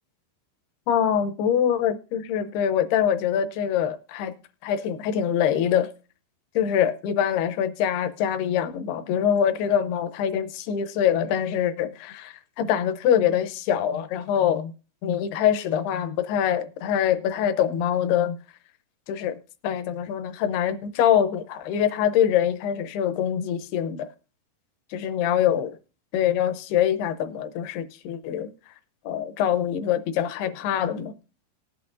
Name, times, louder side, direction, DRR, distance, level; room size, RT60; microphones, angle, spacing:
voice 1, 0.9-4.3 4.6-5.9 6.6-14.7 15.0-18.4 19.1-19.4 19.6-24.1 24.9-25.7 26.1-28.5 29.1-31.1, left 9 dB, 80° left, 2.7 m, -24 dB
19.0 x 8.2 x 2.5 m
omnidirectional pair, 4.6 m